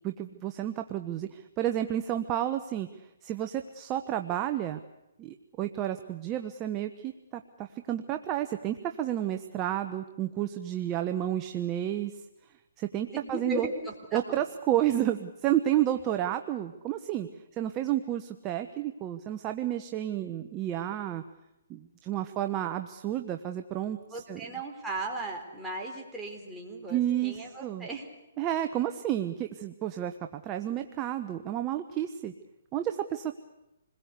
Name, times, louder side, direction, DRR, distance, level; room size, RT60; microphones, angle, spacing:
voice 1, 0.0-2.9 3.2-4.8 5.2-12.1 12.8-13.7 14.1-17.3 17.5-21.2 21.7-24.0 24.3-24.4 26.9-27.9 28.4-30.1 30.4-32.3 32.7-33.3, right 12 dB, 20° right, 7 dB, 1.0 m, -31 dB
voice 2, 13.1-14.2 24.1-28.1, right 2 dB, 5° right, -3 dB, 4.2 m, -37 dB
27.5 x 21.0 x 8.3 m, 0.92 s
hypercardioid pair, 155°, 0 cm